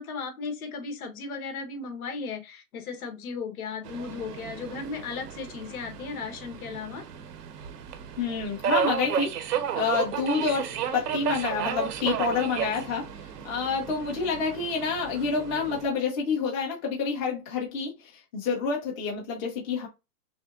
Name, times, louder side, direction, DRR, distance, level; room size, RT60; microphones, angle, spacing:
voice 1, 0.0-7.0, left 5 dB, 65° left, 1.3 m, -36 dB
Subway metro underground, 3.8-15.9, right 8 dB, 75° right, 1.0 m, -33 dB
voice 2, 8.2-9.3 9.7-13.1 13.4-19.9, left 5 dB, 20° left, 1.0 m, -28 dB
6.2 x 2.1 x 2.5 m
hypercardioid pair, 160°, 47 cm